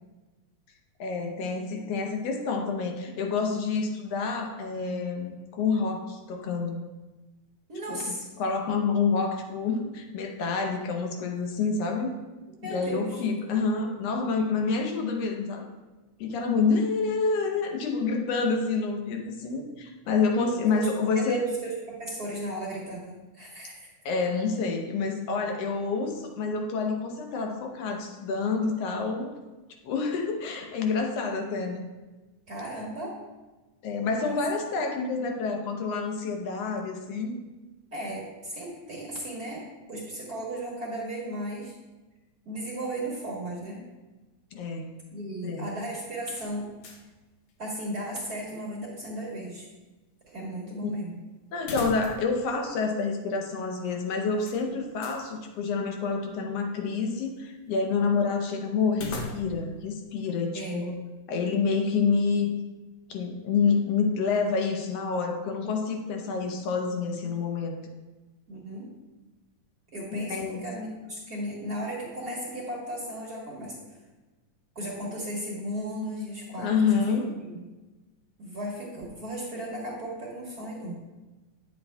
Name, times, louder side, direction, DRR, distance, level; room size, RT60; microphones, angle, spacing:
voice 1, 1.0-6.8 7.9-12.1 12.6-15.7 16.2-21.5 24.0-29.4 29.8-31.9 33.8-37.4 44.5-44.9 45.4-45.6 50.8-50.9 51.5-60.9 61.3-62.5 63.1-67.8 70.1-70.7 76.6-77.3, left 4 dB, 70° left, 3 dB, 1.7 m, -28 dB
voice 2, 7.7-8.3 12.6-13.2 20.7-20.9 21.1-23.9 32.5-33.2 34.2-34.4 37.9-41.8 42.4-43.8 45.1-46.7 47.6-49.7 50.3-51.2 60.5-60.8 68.5-68.9 69.9-73.8 74.7-77.1 77.4-77.6 78.4-80.9, right 1 dB, 45° right, -5 dB, 1.4 m, -35 dB
sound 1, 46.3-47.2 47.5-47.6 51.6-52.4 52.7-52.8 54.4-55.3 58.9-59.8, left 2 dB, 90° left, 1.1 m, -39 dB
9.6 x 7.7 x 2.2 m, 1.2 s
omnidirectional pair, 3.3 m